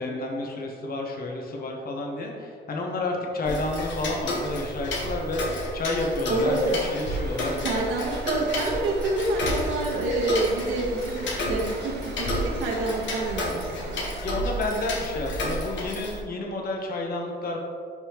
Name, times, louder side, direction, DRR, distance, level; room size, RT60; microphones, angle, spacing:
voice 1, 0.0-7.5 14.2-17.6, left 2 dB, 50° left, 0 dB, 1.1 m, -30 dB
Tick-tock, 3.4-16.2, left 1 dB, 65° left, 1.3 m, -31 dB
voice 2, 6.3-6.9 7.6-14.0, right 2 dB, 90° right, -2 dB, 1.2 m, -27 dB
sound 1, 6.4-14.2, right 6 dB, 55° right, 0.5 m, -44 dB
sound 2, 7.1-13.2, left 1 dB, 5° left, 0.9 m, -44 dB
10.5 x 3.6 x 3.0 m, 2.2 s
cardioid pair, 90°, 20 cm